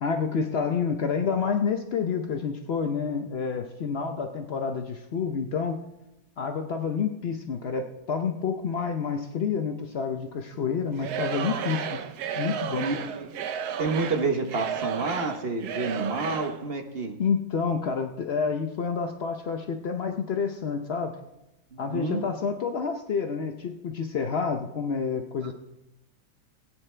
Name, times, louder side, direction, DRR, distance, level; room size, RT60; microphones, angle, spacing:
voice 1, 0.0-5.8 6.4-12.0 12.4-12.9 17.2-21.1 21.8-25.5, left 6 dB, 80° left, 6 dB, 0.5 m, -29 dB
Singing / Crowd, 10.9-16.6, right 8 dB, 65° right, 1.2 m, -33 dB
voice 2, 12.8-13.3 13.8-17.1 21.7-22.2, right 3 dB, 40° right, 5 dB, 1.0 m, -29 dB
20.0 x 9.2 x 3.3 m, 0.95 s
omnidirectional pair, 2.1 m